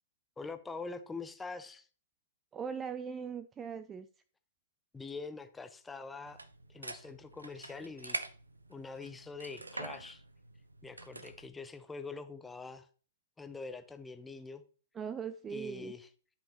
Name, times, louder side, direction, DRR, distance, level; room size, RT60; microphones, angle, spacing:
voice 1, 0.4-1.9 4.9-6.4 6.7-8.2 8.7-10.2 10.8-12.9 13.4-14.6 15.5-16.1, left 4 dB, 10° left, 10 dB, 0.7 m, -44 dB
voice 2, 2.5-4.1 14.9-15.9, right 6 dB, 15° right, 12 dB, 0.4 m, -40 dB
sound 1, 6.3-11.5, right 2 dB, 85° right, 0.7 m, -45 dB
12.0 x 5.5 x 2.9 m, 0.40 s
figure-of-eight pair, 115°, 0 cm